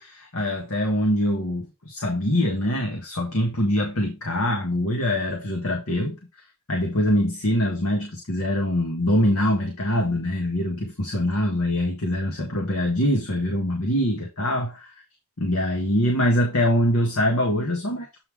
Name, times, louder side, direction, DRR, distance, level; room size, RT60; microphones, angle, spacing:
voice 1, 0.0-6.2 6.7-14.9 15.4-18.1, left 1 dB, 70° left, 1 dB, 1.7 m, -24 dB
8.1 x 3.8 x 4.8 m, 0.25 s
head